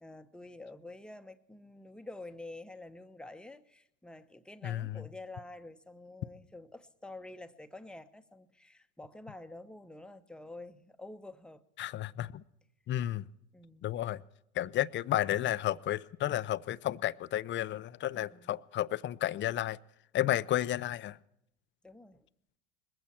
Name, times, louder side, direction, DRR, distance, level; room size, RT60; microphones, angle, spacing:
voice 1, 0.0-11.6 13.5-13.9 18.1-18.6 21.8-22.3, left 2 dB, ahead, 0.9 m, -48 dB
voice 2, 4.6-5.0 11.8-12.4 12.9-13.2 13.8-14.2 14.6-19.8 20.1-21.2, left 13 dB, 30° left, 0.5 m, -32 dB
21.0 x 15.0 x 4.4 m
hypercardioid pair, 85°, 36 cm